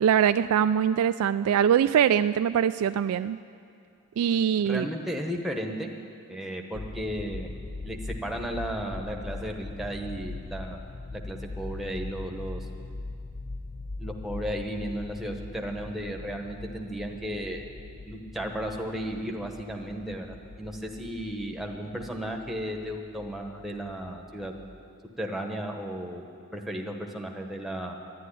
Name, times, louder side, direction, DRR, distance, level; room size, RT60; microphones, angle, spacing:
voice 1, 0.0-3.4 4.2-4.9, right 8 dB, 85° right, 13 dB, 0.3 m, -23 dB
voice 2, 4.6-5.9 6.3-7.5 7.8-10.9 11.1-12.7 14.0-17.7 18.0-24.5 25.2-26.3 26.5-27.9, equal, ahead, 2 dB, 1.1 m, -34 dB
sound 1, 6.7-24.8, left 2 dB, 20° left, 0.4 m, -41 dB
11.0 x 11.0 x 9.9 m, 2.4 s
head